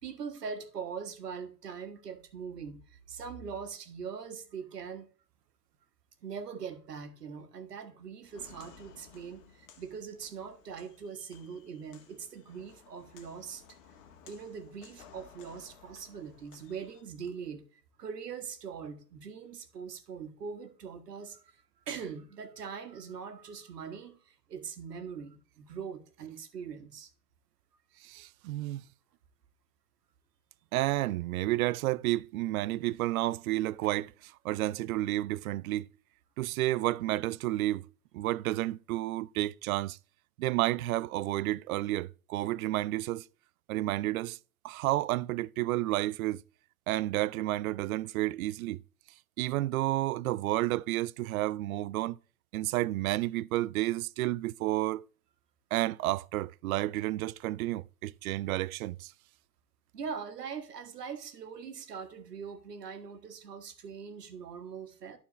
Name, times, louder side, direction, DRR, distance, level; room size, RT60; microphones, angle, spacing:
voice 1, 0.0-5.1 6.2-13.6 14.2-27.1 59.9-65.2, right 6 dB, 90° right, 1.6 m, -42 dB
Walk footsteps, 8.2-17.0, left 7 dB, 55° left, 1.6 m, -57 dB
voice 2, 28.0-28.8 30.7-35.8 36.4-37.9 38.1-40.0 40.4-43.2 43.7-44.4 44.6-46.4 46.9-48.8 49.4-52.2 52.5-55.0 55.7-59.1, right 16 dB, 65° right, 0.5 m, -31 dB
12.0 x 4.4 x 3.9 m
hypercardioid pair, 120°, 46 cm